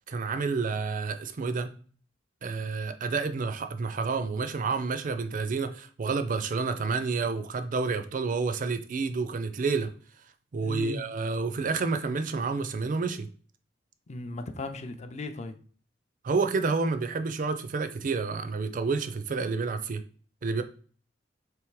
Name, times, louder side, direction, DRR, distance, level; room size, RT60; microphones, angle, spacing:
voice 1, 0.1-1.7 2.4-9.9 10.5-13.3 16.2-20.0 20.4-20.6, right 4 dB, 45° right, 9 dB, 0.4 m, -29 dB
voice 2, 10.6-11.0 14.1-15.6, left 2 dB, 40° left, 8 dB, 0.5 m, -37 dB
3.5 x 3.2 x 4.6 m, 0.42 s
head